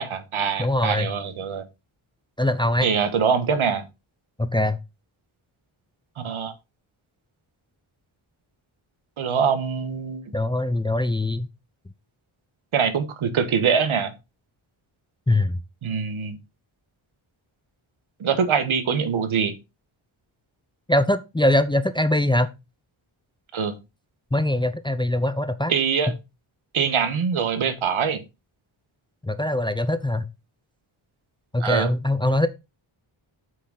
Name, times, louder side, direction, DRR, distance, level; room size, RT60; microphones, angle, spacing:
voice 1, 0.0-1.6 2.8-3.8 6.2-6.5 9.2-10.2 12.7-14.1 15.8-16.4 18.2-19.5 23.5-23.8 25.7-26.1 26.7-28.2 31.6-31.9, right 6 dB, 80° right, 1.4 m, -23 dB
voice 2, 0.6-1.1 2.4-2.9 4.4-4.8 10.3-11.5 15.3-15.6 20.9-22.5 24.3-25.7 29.2-30.3 31.5-32.5, left 1 dB, 10° left, 0.6 m, -22 dB
7.8 x 6.2 x 3.9 m
wide cardioid pair, 100°, 48 cm